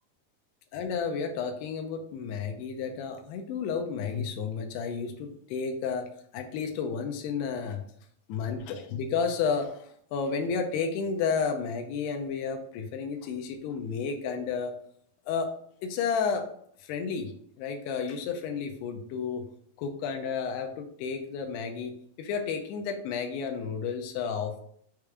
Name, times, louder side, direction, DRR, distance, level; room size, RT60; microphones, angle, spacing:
voice 1, 0.7-7.8 8.3-14.7 15.3-15.5 15.8-16.5 16.9-17.3 17.6-19.4 19.8-24.6, left 6 dB, 90° left, 4 dB, 2.7 m, -32 dB
6.6 x 3.6 x 4.6 m, 0.65 s
omnidirectional pair, 4.7 m